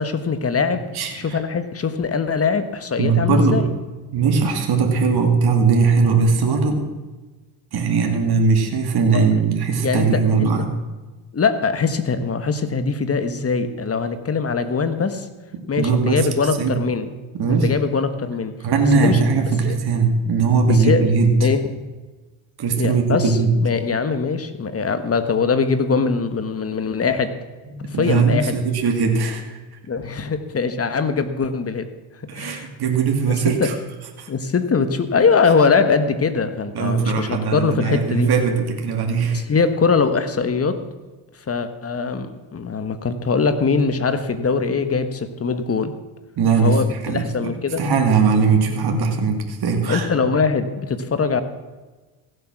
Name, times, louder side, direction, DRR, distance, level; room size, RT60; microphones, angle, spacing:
voice 1, 0.0-0.9 1.1-3.7 9.1-9.3 9.8-10.5 11.3-15.3 15.7-17.1 17.5-18.5 18.9-19.2 19.6-19.8 20.7-21.0 21.4-21.6 22.8-27.4 27.8-28.5 29.9-31.9 32.3-32.7 33.3-33.4 33.6-33.7 34.3-38.3 39.3-40.8 41.5-45.9 46.6-47.8 49.9-51.4, left 5 dB, 30° left, 10 dB, 1.3 m, -22 dB
voice 2, 0.9-1.4 3.0-3.6 4.1-6.8 7.7-10.7 15.5-16.3 16.6-16.8 17.4-17.7 18.6-21.3 22.6-23.6 27.7-29.6 32.3-33.7 34.2-34.3 36.7-39.4 46.4-47.5 47.8-50.1, right 5 dB, 50° right, 3 dB, 2.3 m, -19 dB
16.0 x 7.9 x 6.0 m, 1.2 s
supercardioid pair, 85°, 49 cm